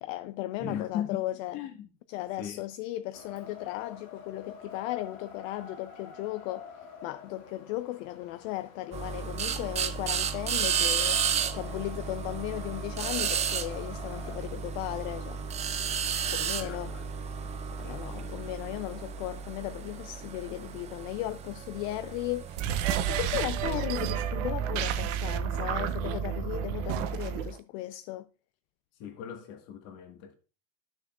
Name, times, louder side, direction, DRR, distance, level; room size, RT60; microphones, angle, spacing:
voice 1, 0.0-1.6 2.1-6.7 7.0-11.2 11.5-15.4 16.3-16.9 17.7-22.5 23.1-28.3, left 16 dB, 70° left, 0.5 m, -36 dB
voice 2, 0.6-1.2 1.5-1.9 2.4-2.6 16.5-17.1 17.4-17.5 17.8-18.4 29.0-30.4, left 9 dB, 50° left, 1.6 m, -38 dB
Wind, 3.1-14.3, left 5 dB, 90° left, 2.1 m, -48 dB
sound 1, 8.9-23.4, right 7 dB, 20° right, 0.4 m, -33 dB
sound 2, 22.5-27.6, right 9 dB, 70° right, 0.8 m, -30 dB
11.5 x 6.5 x 2.4 m
supercardioid pair, 150°, 40 cm